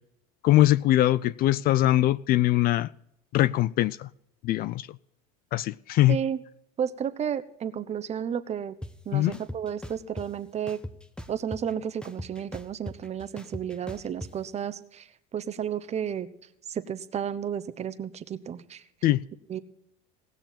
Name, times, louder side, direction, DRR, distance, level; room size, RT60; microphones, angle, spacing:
voice 1, 0.4-2.9 3.3-4.1 4.4-4.9 5.5-6.2 9.1-9.4 19.0-19.2, left 15 dB, 45° left, 0.4 m, -22 dB
voice 2, 6.1-6.4 6.8-8.7 9.1-10.8 11.3-15.0 15.3-16.3 16.7-18.8 19.5-19.6, right 8 dB, 30° right, 1.0 m, -32 dB
sound 1, 8.8-8.9 9.3-10.3 10.7-11.7 12.0-14.3, left 1 dB, 5° left, 0.9 m, -39 dB
18.5 x 6.8 x 5.8 m
supercardioid pair, 100°, 21 cm